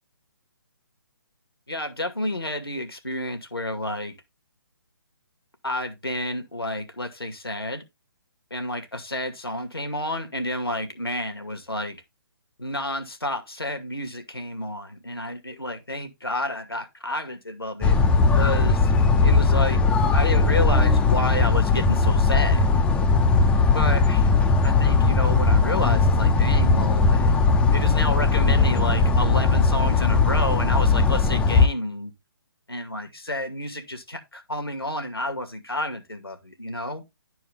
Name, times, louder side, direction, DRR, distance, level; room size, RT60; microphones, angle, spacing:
voice 1, 1.7-4.1 5.6-7.8 8.5-12.0 12.6-18.0 18.3-18.9 19.2-19.8 20.1-22.6 23.7-24.3 24.6-27.3 27.7-32.1 32.7-37.0, left 1 dB, 85° left, 2.2 m, -30 dB
sound 1, 17.8-31.7, left 4 dB, 10° left, 0.6 m, -19 dB
11.5 x 4.7 x 3.6 m
figure-of-eight pair, 140°, 12 cm